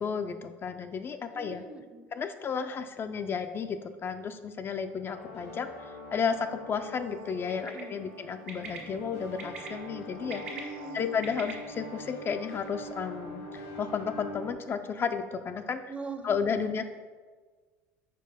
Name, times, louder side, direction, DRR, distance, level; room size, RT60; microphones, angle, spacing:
voice 1, 0.0-1.6 2.1-10.4 10.9-15.8 16.2-16.9, left 6 dB, 35° left, 7 dB, 0.3 m, -33 dB
voice 2, 1.3-2.0 7.7-7.9 10.5-11.2 15.9-16.3, right 4 dB, 15° right, 7 dB, 0.6 m, -42 dB
sound 1, 5.1-14.5, left 1 dB, 85° left, 1.3 m, -43 dB
Bird, 7.5-7.8 8.5-8.8 9.4-9.7 10.2-11.5, right 5 dB, 90° right, 1.1 m, -41 dB
4.9 x 4.5 x 4.8 m, 1.5 s
hypercardioid pair, 85°, 7 cm